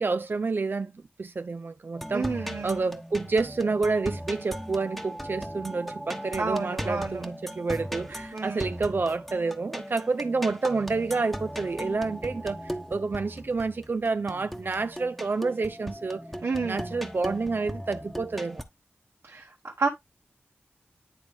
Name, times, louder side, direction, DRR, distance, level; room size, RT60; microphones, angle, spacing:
voice 1, 0.0-2.3 2.6-12.6 12.9-16.2 16.6-18.6, right 4 dB, 55° right, 0.5 m, -29 dB
sound 1, 1.9-18.6, equal, ahead, 1.1 m, -38 dB
voice 2, 2.1-2.8 6.4-7.2 8.3-8.7 16.4-16.9 19.2-19.9, right 4 dB, 75° right, 1.2 m, -30 dB
10.5 x 3.6 x 3.5 m
wide cardioid pair, 70°, 4 cm